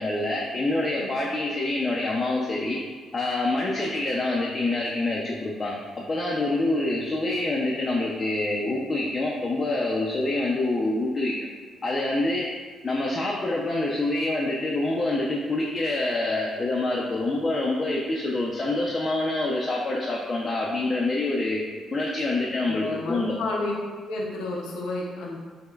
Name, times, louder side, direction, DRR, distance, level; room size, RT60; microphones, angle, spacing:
voice 1, 0.0-2.8 3.1-5.8 6.1-11.5 11.8-12.5 12.8-21.6 21.9-23.3, left 2 dB, 35° left, -3 dB, 0.4 m, -26 dB
voice 2, 22.7-23.8 24.1-25.4, left 2 dB, 85° left, -2 dB, 0.5 m, -30 dB
4.9 x 2.1 x 2.3 m, 1.5 s
cardioid pair, 90°, 0 cm